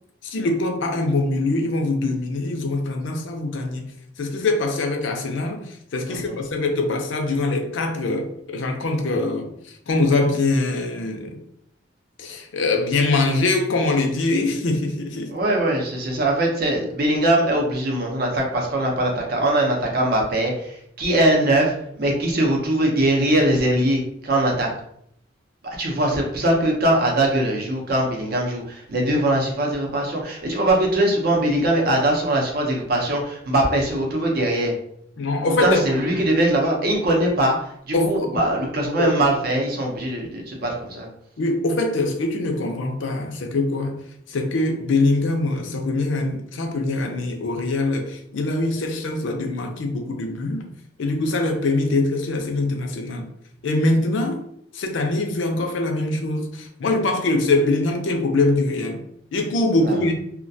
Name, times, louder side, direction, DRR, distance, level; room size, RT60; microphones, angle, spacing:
voice 1, 0.2-3.9 4.2-11.4 12.2-15.4 35.2-35.8 37.9-38.3 39.0-39.1 41.4-44.0 44.3-50.7 51.0-53.3 53.6-54.4 54.7-59.0 59.3-60.1, left 2 dB, 75° left, 0.4 m, -23 dB
voice 2, 15.3-24.7 25.6-34.7 35.6-41.1 59.8-60.0, right 1 dB, 50° right, 0.6 m, -21 dB
2.3 x 2.1 x 2.6 m
head